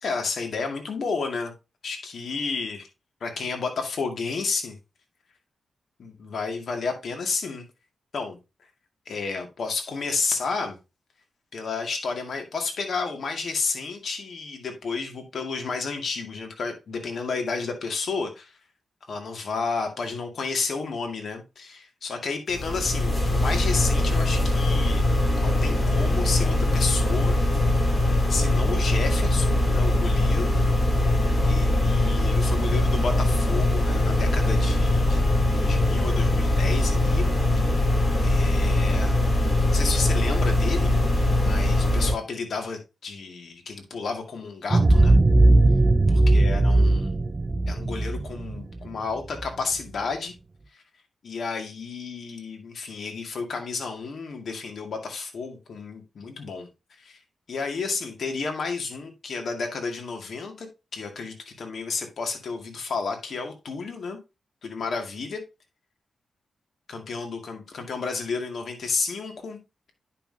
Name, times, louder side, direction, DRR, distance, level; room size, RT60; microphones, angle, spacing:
voice 1, 0.0-1.5 1.8-2.9 3.2-4.8 6.0-7.6 8.1-8.4 9.1-10.8 11.5-18.6 19.0-25.0 25.4-27.4 28.3-30.6 31.5-37.3 37.6-37.9 38.2-39.1 39.7-41.0 41.3-45.2 46.1-47.2 47.7-50.3 50.7-50.8 51.2-56.7 57.0-57.2 57.5-60.7 60.9-64.2 64.6-65.4 66.9-69.6, left 4 dB, 65° left, 2.2 m, -31 dB
sound 1, 22.5-42.1, left 1 dB, 30° left, 2.9 m, -22 dB
sound 2, 44.7-49.5, right 2 dB, 25° right, 0.5 m, -19 dB
10.0 x 5.8 x 2.8 m
cardioid pair, 90°, 0 cm